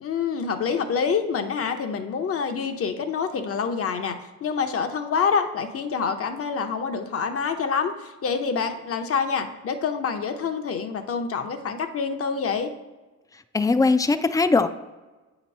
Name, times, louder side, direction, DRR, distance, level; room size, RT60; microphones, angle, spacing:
voice 1, 0.0-12.7, left 6 dB, 50° left, 7 dB, 0.8 m, -27 dB
voice 2, 13.5-14.7, left 3 dB, 10° left, 11 dB, 0.3 m, -20 dB
8.1 x 3.0 x 5.4 m, 1.2 s
cardioid pair, 90°, 30 cm